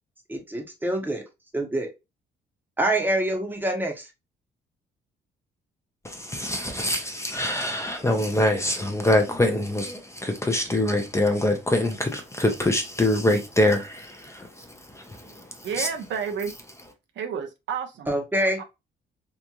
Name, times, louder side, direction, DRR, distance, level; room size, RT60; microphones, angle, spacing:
voice 1, 0.3-1.2 1.5-1.9 2.8-4.1 18.1-18.6, right 1 dB, 10° right, 0.9 m, -25 dB
voice 2, 6.0-15.9, left 1 dB, 15° left, 0.6 m, -25 dB
voice 3, 15.6-16.5 17.1-18.1 18.6-18.7, right 7 dB, 70° right, 0.6 m, -30 dB
2.9 x 2.5 x 2.3 m
cardioid pair, 90°, 20 cm